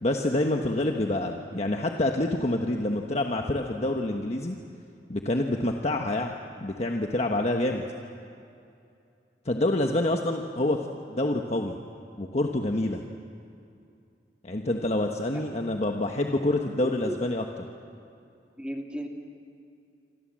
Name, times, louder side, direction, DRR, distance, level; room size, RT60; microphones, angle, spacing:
voice 1, 0.0-4.5 5.1-7.8 9.4-11.7 12.2-13.0 14.4-17.4, left 1 dB, 40° left, 3 dB, 1.2 m, -27 dB
voice 2, 16.8-17.2 18.6-19.1, equal, 5° right, 1 dB, 2.5 m, -35 dB
28.0 x 24.5 x 7.5 m, 2.5 s
head